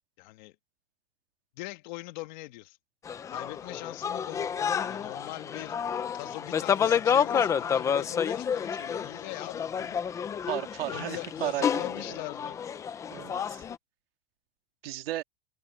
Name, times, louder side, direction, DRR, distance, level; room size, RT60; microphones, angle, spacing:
voice 1, 0.2-0.6 1.5-2.8 3.3-5.8 6.1-10.0 10.9-12.6, left 21 dB, 50° left, 2.2 m, -41 dB
sound 1, 3.1-13.8, left 7 dB, 10° left, 0.5 m, -30 dB
voice 2, 10.5-12.2 13.1-13.6 14.8-15.2, right 15 dB, 70° right, 1.9 m, -35 dB
supercardioid pair, 160°, 31 cm